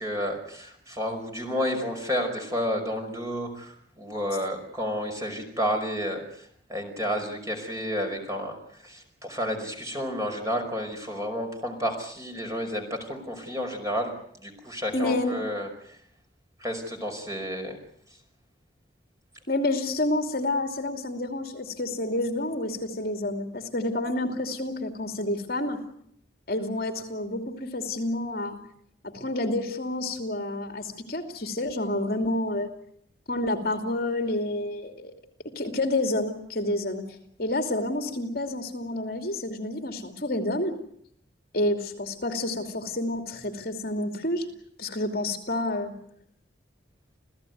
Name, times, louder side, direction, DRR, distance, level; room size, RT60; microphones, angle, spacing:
voice 1, 0.0-14.1 14.4-16.0 16.6-17.8, equal, 15° right, 3 dB, 5.2 m, -31 dB
voice 2, 14.9-15.3 19.5-25.8 26.5-28.6 29.0-32.7 33.3-35.1 35.4-37.0 37.4-40.7 41.5-44.5 44.8-45.9, left 1 dB, 50° left, 6 dB, 2.8 m, -29 dB
28.5 x 16.5 x 9.4 m, 0.69 s
head